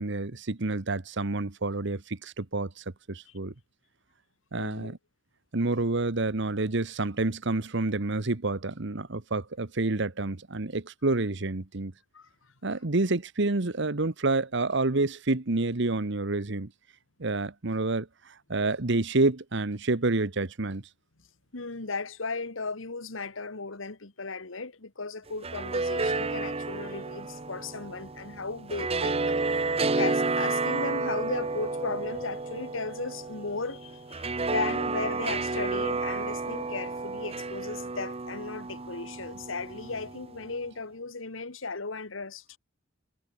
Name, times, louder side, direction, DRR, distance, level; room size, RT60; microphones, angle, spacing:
voice 1, 0.0-3.5 4.5-5.0 5.5-11.9 12.6-16.7 17.2-18.1 18.5-20.8, right 2 dB, 65° right, 1.3 m, -28 dB
voice 2, 4.5-5.0 12.1-12.5 21.5-29.4 29.9-42.6, left 4 dB, 85° left, 1.8 m, -36 dB
sound 1, 25.3-40.4, right 3 dB, 30° right, 1.0 m, -31 dB
head